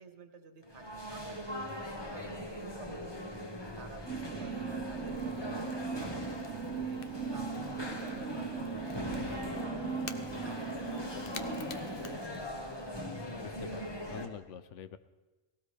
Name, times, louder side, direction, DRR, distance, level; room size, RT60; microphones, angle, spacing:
voice 1, 0.0-1.8 2.1-6.4 6.7-7.0 7.3-9.9 10.4-12.1, right 4 dB, 70° right, 7 dB, 1.5 m, -52 dB
sound 1, 0.6-14.3, left 1 dB, 20° left, 1.3 m, -40 dB
Crackle / Crack, 3.8-12.9, left 6 dB, 55° left, 0.9 m, -53 dB
sound 2, 4.1-12.2, right 7 dB, 90° right, 1.1 m, -39 dB
voice 2, 13.3-15.0, left 8 dB, 80° left, 12 dB, 1.0 m, -46 dB
17.5 x 17.5 x 3.4 m, 1.2 s
omnidirectional pair, 1.2 m